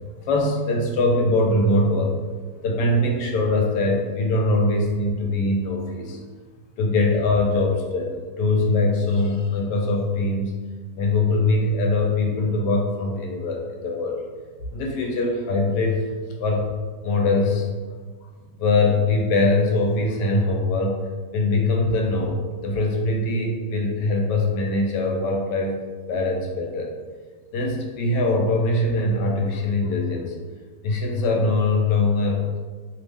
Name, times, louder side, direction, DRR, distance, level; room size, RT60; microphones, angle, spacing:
voice 1, 0.2-2.2 2.6-6.2 6.8-10.6 10.9-14.2 14.7-16.1 16.4-16.7 17.0-17.7 18.6-21.0 21.3-25.8 26.1-26.9 27.5-30.3 30.8-32.6, left 2 dB, 85° left, 1 dB, 1.2 m, -22 dB
3.1 x 2.0 x 3.3 m, 1.5 s
omnidirectional pair, 1.8 m